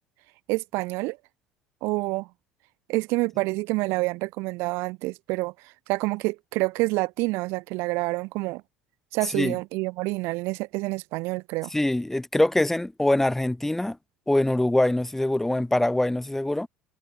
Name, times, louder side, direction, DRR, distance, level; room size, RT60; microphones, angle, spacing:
voice 1, 0.5-1.2 1.8-2.3 2.9-5.5 5.9-8.6 9.1-11.7, right 24 dB, 70° right, 0.6 m, -27 dB
voice 2, 9.2-9.6 11.7-14.0 14.3-16.7, left 1 dB, 5° left, 0.6 m, -23 dB
hypercardioid pair, 75°, 5 cm